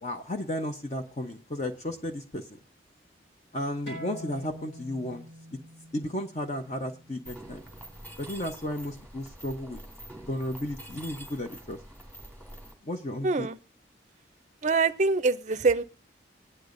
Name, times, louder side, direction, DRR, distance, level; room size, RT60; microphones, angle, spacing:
voice 1, 0.0-2.6 3.5-5.3 5.9-7.6 8.2-9.8 10.3-11.8 12.8-13.5, left 1 dB, 40° left, 0.8 m, -34 dB
sound 1, 3.9-9.0, equal, 75° left, 6.6 m, -46 dB
Mechanisms, 7.3-12.7, right 1 dB, 10° left, 2.4 m, -46 dB
voice 2, 13.2-13.6 14.6-15.8, right 4 dB, 40° right, 0.5 m, -24 dB
20.0 x 10.0 x 2.6 m
head